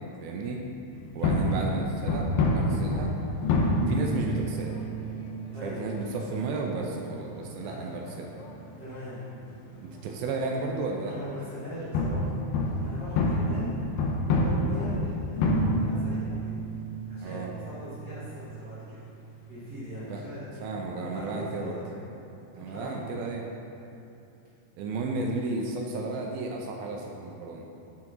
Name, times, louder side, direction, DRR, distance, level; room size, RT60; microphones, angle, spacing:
voice 1, 0.2-0.6 1.1-3.1 3.9-4.7 5.6-8.3 9.8-11.1 17.2-17.5 20.1-20.2 20.6-21.8 22.6-23.5 24.7-27.7, right 3 dB, 80° right, 1 dB, 2.2 m, -33 dB
sound 1, 0.9-20.3, left 1 dB, 85° left, 2.8 m, -29 dB
voice 2, 5.5-5.8 7.6-7.9 8.8-9.2 11.0-12.3 12.7-13.8 14.3-16.5 17.1-17.4 17.6-19.0 19.5-20.4 21.1-21.8 22.5-23.0, equal, 35° right, -12 dB, 1.6 m, -40 dB
7.1 x 6.2 x 4.5 m, 2.7 s
omnidirectional pair, 4.6 m